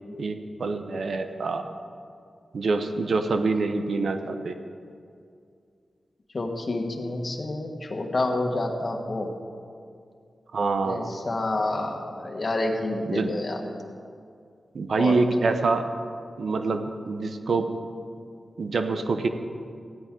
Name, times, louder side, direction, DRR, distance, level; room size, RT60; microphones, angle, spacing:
voice 1, 0.2-1.7 2.5-4.6 10.5-11.1 13.1-13.3 14.7-15.9 16.4-17.7 18.6-19.3, right 3 dB, 80° right, 8 dB, 0.7 m, -26 dB
voice 2, 6.3-9.3 10.8-13.6 15.0-15.2, left 2 dB, 50° left, 2 dB, 1.5 m, -28 dB
15.5 x 10.5 x 3.8 m, 2.3 s
cardioid pair, 50°, 0 cm